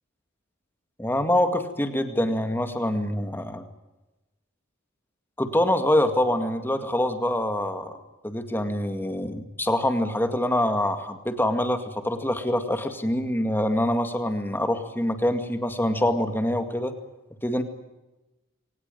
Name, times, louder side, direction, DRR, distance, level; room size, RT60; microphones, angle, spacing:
voice 1, 1.0-3.7 5.4-8.0 8.2-16.9 17.4-17.6, left 1 dB, 10° left, 7 dB, 2.1 m, -25 dB
23.5 x 19.0 x 9.2 m, 1.1 s
head